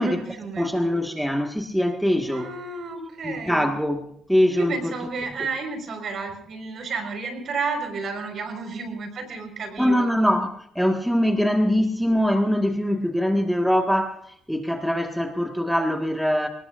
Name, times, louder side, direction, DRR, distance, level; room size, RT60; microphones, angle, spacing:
voice 1, 0.0-0.7 2.3-3.7 4.5-10.1, right 4 dB, 60° right, 5 dB, 5.1 m, -32 dB
voice 2, 0.6-2.5 3.2-4.9 9.8-16.5, equal, ahead, 3 dB, 1.7 m, -23 dB
28.5 x 19.5 x 2.6 m, 0.70 s
cardioid pair, 90°, 0 cm